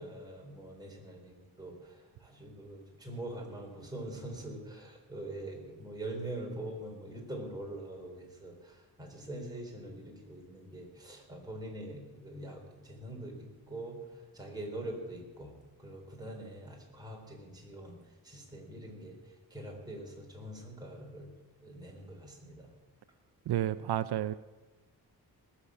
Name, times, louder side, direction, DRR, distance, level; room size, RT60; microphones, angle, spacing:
voice 1, 0.0-18.0 18.2-21.3 21.6-22.7, right 1 dB, 10° right, -1 dB, 4.0 m, -44 dB
voice 2, 23.5-24.3, right 12 dB, 80° right, 13 dB, 0.6 m, -31 dB
19.5 x 7.3 x 8.6 m, 1.2 s
wide cardioid pair, 120°, 39 cm